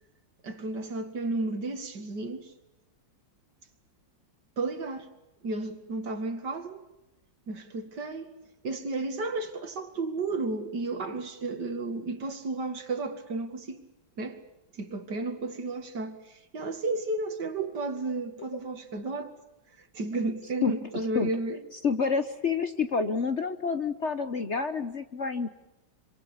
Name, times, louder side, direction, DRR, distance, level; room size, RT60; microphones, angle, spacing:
voice 1, 0.4-2.5 4.6-5.1 5.4-6.8 7.5-8.3 8.6-13.8 14.2-14.4 14.7-19.3 19.8-21.6, right 3 dB, 60° right, 2.8 m, -33 dB
voice 2, 21.8-25.5, left 5 dB, 45° left, 1.2 m, -28 dB
26.5 x 25.5 x 7.1 m
omnidirectional pair, 2.0 m